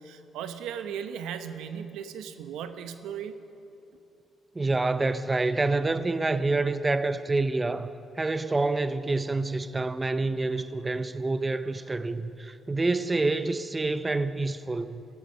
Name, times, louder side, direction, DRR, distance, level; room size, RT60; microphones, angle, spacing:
voice 1, 0.0-3.3, right 8 dB, 90° right, 0.9 m, -37 dB
voice 2, 4.6-7.9 8.2-15.0, right 3 dB, 20° right, 0.6 m, -27 dB
15.5 x 14.5 x 6.3 m
cardioid pair, 90°, 0 cm